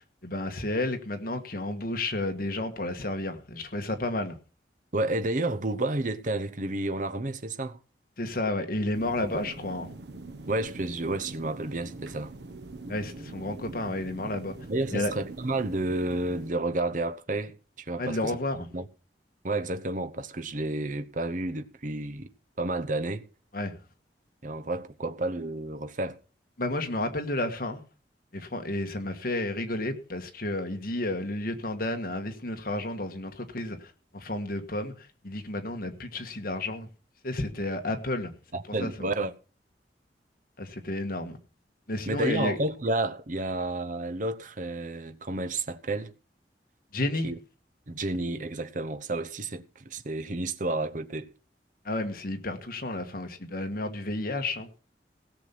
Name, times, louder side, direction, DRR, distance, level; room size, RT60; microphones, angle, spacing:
voice 1, 0.0-4.4 8.2-9.9 12.9-14.6 14.9-15.1 18.0-18.6 23.5-23.8 26.6-27.8 28.3-36.9 37.2-38.3 38.8-39.1 40.6-41.4 41.9-42.6 46.9-47.3 51.9-54.7, left 2 dB, 55° left, 1.6 m, -31 dB
voice 2, 4.9-7.8 10.5-12.3 14.7-18.4 18.7-18.8 19.4-22.3 22.6-23.3 24.4-26.2 38.5-39.3 42.1-46.1 47.2-47.4 47.9-51.3, right 2 dB, 45° right, 0.9 m, -31 dB
sound 1, 8.9-16.5, right 2 dB, 75° right, 1.0 m, -43 dB
16.5 x 6.9 x 5.9 m
head